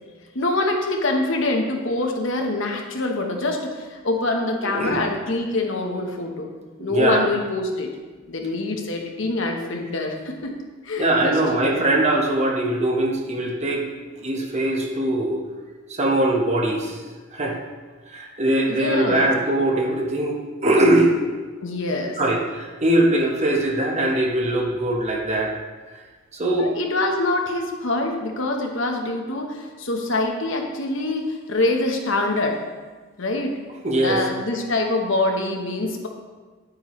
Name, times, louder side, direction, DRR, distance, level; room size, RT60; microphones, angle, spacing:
voice 1, 0.3-6.5 6.8-7.9 8.3-10.5 10.8-11.8 18.7-19.3 21.6-22.2 26.6-32.6 33.2-33.6 34.0-36.1, left 2 dB, 65° left, 2 dB, 1.2 m, -25 dB
voice 2, 4.6-5.1 6.9-7.3 11.0-13.9 14.2-15.4 15.9-17.0 17.3-17.6 18.1-21.1 22.2-25.5 26.3-26.7 33.8-34.2, right 1 dB, 35° right, 0 dB, 1.1 m, -21 dB
9.5 x 8.7 x 3.2 m, 1.4 s
head